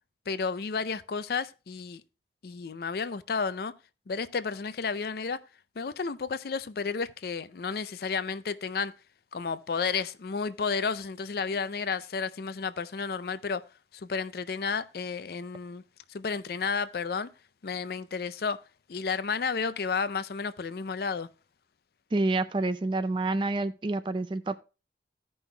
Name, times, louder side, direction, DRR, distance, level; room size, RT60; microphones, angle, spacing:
voice 1, 0.3-2.0 2.4-3.7 4.1-5.4 5.8-8.9 9.3-13.7 13.9-15.8 16.1-17.3 17.6-18.6 18.9-21.3, left 5 dB, 55° left, 0.4 m, -32 dB
voice 2, 22.1-24.6, right 2 dB, 25° right, 0.3 m, -28 dB
16.0 x 5.4 x 2.2 m
head